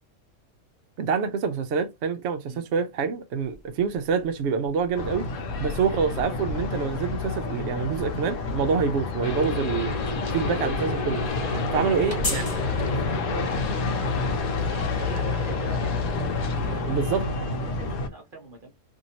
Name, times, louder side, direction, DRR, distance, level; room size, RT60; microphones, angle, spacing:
voice 1, 1.0-5.3 5.6-9.9 10.3-11.2 11.7-12.5 16.9-17.3, right 6 dB, 65° right, 0.7 m, -26 dB
sound 1, 3.4-16.8, left 2 dB, 25° left, 1.4 m, -43 dB
sound 2, 4.9-18.1, left 3 dB, 65° left, 0.9 m, -29 dB
sound 3, 9.2-16.7, left 3 dB, 50° left, 0.4 m, -33 dB
voice 2, 11.5-15.9 16.5-18.7, right 2 dB, 40° right, 1.0 m, -42 dB
2.7 x 2.7 x 2.8 m
omnidirectional pair, 1.5 m